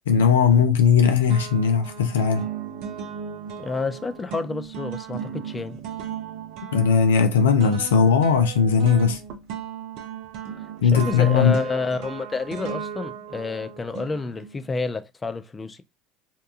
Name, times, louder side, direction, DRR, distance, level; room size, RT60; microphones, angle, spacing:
voice 1, 0.1-2.5 6.7-9.2 10.8-11.6, left 6 dB, 80° left, 0.5 m, -18 dB
sound 1, 0.5-1.0 1.3-14.7, right 8 dB, 60° right, 0.5 m, -36 dB
voice 2, 3.6-5.8 10.9-15.8, left 4 dB, 20° left, 0.4 m, -29 dB
2.8 x 2.3 x 2.4 m
hypercardioid pair, 70°, 0 cm